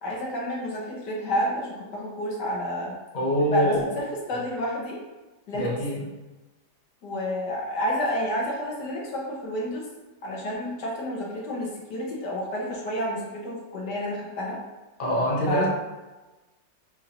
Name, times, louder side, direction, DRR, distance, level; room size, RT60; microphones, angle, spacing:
voice 1, 0.0-2.9 3.5-3.6 4.0-4.1 4.3-5.0 5.5-5.7 7.0-9.9 10.2-14.6 15.5-15.7, equal, 65° left, -4 dB, 1.6 m, -30 dB
voice 2, 3.1-3.9 5.5-6.1 15.0-15.7, equal, 40° left, -5 dB, 0.8 m, -24 dB
6.6 x 2.7 x 2.9 m, 1.1 s
omnidirectional pair, 2.0 m